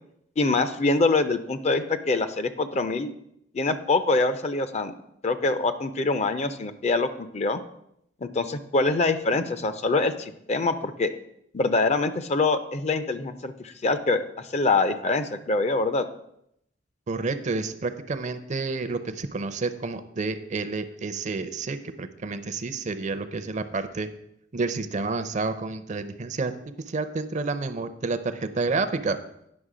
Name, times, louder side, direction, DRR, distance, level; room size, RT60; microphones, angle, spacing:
voice 1, 0.4-3.1 3.5-4.9 5.2-7.6 8.2-11.1 11.5-16.1, left 3 dB, 35° left, 11 dB, 0.5 m, -24 dB
voice 2, 17.1-24.1 24.5-26.5 26.9-29.2, right 3 dB, 40° right, 12 dB, 0.5 m, -29 dB
9.7 x 6.0 x 4.9 m, 0.76 s
head